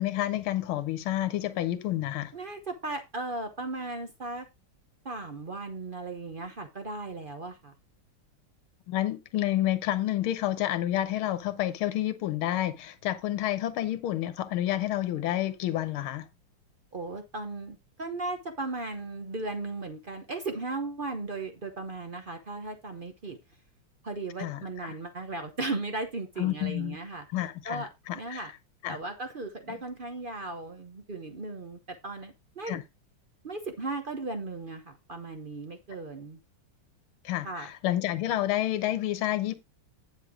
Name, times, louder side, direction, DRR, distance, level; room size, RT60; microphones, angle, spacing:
voice 1, 0.0-2.3 8.9-16.2 24.4-24.6 26.4-27.0 27.3-28.4 28.8-29.0 32.7-32.8 37.2-39.6, left 13 dB, 80° left, 1.7 m, -29 dB
voice 2, 2.3-4.5 5.0-7.7 16.9-23.4 24.0-27.3 27.6-27.9 28.1-28.5 28.9-32.8 33.4-36.4 37.4-37.7, right 3 dB, 55° right, 0.5 m, -36 dB
9.6 x 6.5 x 3.6 m
omnidirectional pair, 2.3 m